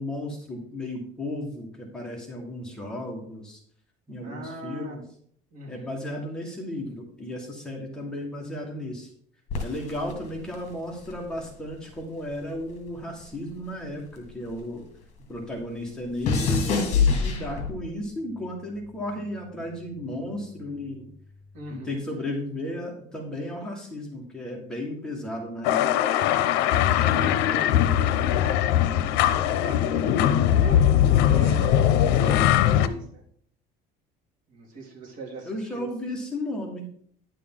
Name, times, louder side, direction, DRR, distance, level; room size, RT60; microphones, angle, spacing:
voice 1, 0.0-3.6 4.1-5.0 5.7-9.1 9.6-14.8 15.3-21.1 21.7-26.0 35.4-36.9, left 1 dB, 5° left, -1 dB, 1.5 m, -34 dB
voice 2, 4.2-5.0 5.5-5.9 21.5-22.0 26.7-30.8 31.3-33.3 34.5-35.9, equal, 50° right, -1 dB, 2.6 m, -38 dB
sound 1, 9.5-12.0 12.3-14.9 15.2-18.0 18.7-19.1, left 5 dB, 45° left, 2.0 m, -27 dB
sound 2, 25.6-32.9, left 11 dB, 80° left, 0.7 m, -21 dB
10.0 x 6.7 x 3.8 m, 0.63 s
cardioid pair, 165°, 17 cm